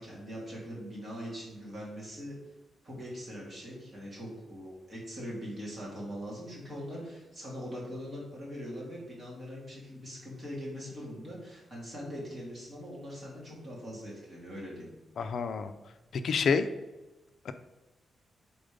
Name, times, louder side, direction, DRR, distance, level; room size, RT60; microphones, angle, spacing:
voice 1, 0.0-2.4 2.8-14.9, equal, 25° right, -5 dB, 2.2 m, -42 dB
voice 2, 15.2-15.7 16.1-16.7 17.4-17.5, left 5 dB, 60° left, 9 dB, 0.4 m, -28 dB
5.2 x 4.3 x 5.1 m, 1.1 s
wide cardioid pair, 175°, 0 cm